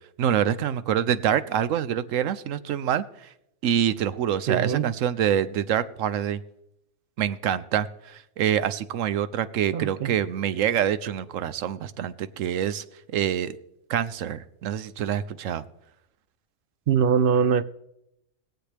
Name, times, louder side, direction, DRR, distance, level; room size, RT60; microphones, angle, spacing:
voice 1, 0.2-3.3 3.6-6.4 7.2-12.8 13.1-13.6 13.9-15.6, right 9 dB, 90° right, 1.0 m, -26 dB
voice 2, 4.5-4.9 9.7-10.1 16.9-17.6, right 7 dB, 60° right, 0.6 m, -22 dB
21.0 x 8.0 x 3.4 m
omnidirectional pair, 1.3 m